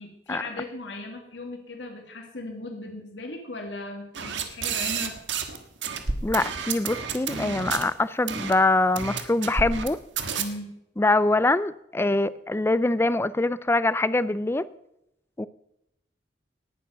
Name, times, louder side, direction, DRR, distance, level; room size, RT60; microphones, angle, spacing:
voice 1, 0.0-5.2 10.4-10.8, left 2 dB, 80° left, 3 dB, 2.0 m, -37 dB
sound 1, 4.1-5.6 5.8-7.8 8.3-8.5 9.0-9.9 10.2-10.4, right 6 dB, 80° right, 1.4 m, -30 dB
voice 2, 6.2-10.0 11.0-14.7 15.4-15.5, left 2 dB, 15° left, 17 dB, 0.4 m, -24 dB
18.0 x 7.4 x 6.0 m, 0.81 s
head